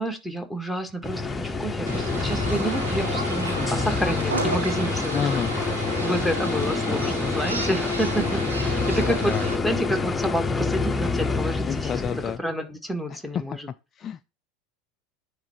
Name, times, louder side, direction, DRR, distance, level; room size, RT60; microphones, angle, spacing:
voice 1, 0.0-5.4 6.0-12.0 12.4-13.7, equal, ahead, 1.7 m, -29 dB
sound 1, 1.0-12.4, left 4 dB, 15° left, 0.9 m, -27 dB
sound 2, 1.9-9.6, right 3 dB, 90° right, 1.6 m, -33 dB
voice 2, 5.1-5.5 8.8-10.1 11.7-12.4 13.1-13.6 13.9-14.3, left 8 dB, 35° left, 0.4 m, -31 dB
9.9 x 3.4 x 4.2 m
hypercardioid pair, 80°, 0 cm